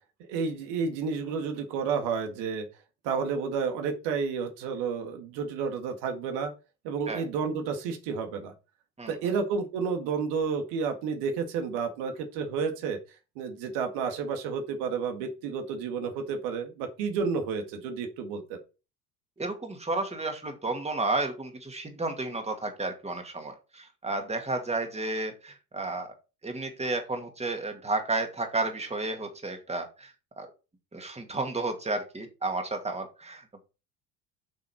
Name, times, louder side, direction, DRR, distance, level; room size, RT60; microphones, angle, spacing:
voice 1, 0.3-2.6 3.0-6.5 6.8-8.5 9.1-13.0 13.4-18.6, right 5 dB, 65° right, 6 dB, 2.0 m, -31 dB
voice 2, 19.4-26.1 26.4-30.5 30.9-33.6, right 2 dB, 15° right, 5 dB, 2.4 m, -32 dB
8.1 x 6.3 x 4.6 m, 0.31 s
hypercardioid pair, 65°, 45 cm